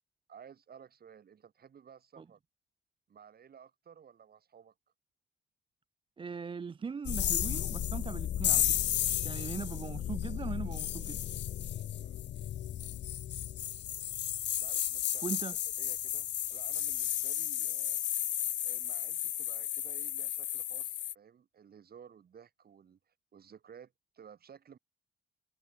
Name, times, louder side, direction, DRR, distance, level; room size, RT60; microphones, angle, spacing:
voice 1, 0.3-2.4 3.1-4.7 12.0-12.2 14.6-15.3 15.8-18.0 18.6-24.8, right 7 dB, 50° right, 3.9 m, -55 dB
voice 2, 6.2-8.8 9.2-11.2 15.2-15.6, right 5 dB, 25° right, 0.5 m, -40 dB
sound 1, 7.0-21.1, left 11 dB, 65° left, 1.0 m, -33 dB
cardioid pair, 90°, 20 cm